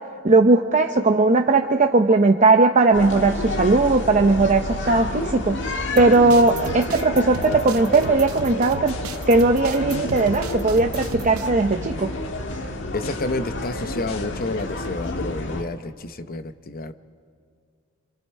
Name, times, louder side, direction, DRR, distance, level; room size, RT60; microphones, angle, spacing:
voice 1, 0.2-5.6 5.9-9.0 9.3-12.1, right 3 dB, 35° right, 4 dB, 0.7 m, -18 dB
sound 1, 2.9-15.6, left 2 dB, 60° left, 1.8 m, -30 dB
sound 2, 6.0-11.5, right 6 dB, 90° right, 0.6 m, -35 dB
sound 3, 8.9-15.0, left 2 dB, 80° left, 1.3 m, -40 dB
voice 2, 12.9-16.9, left 2 dB, 45° left, 10 dB, 0.8 m, -30 dB
28.0 x 27.0 x 4.4 m, 2.2 s
head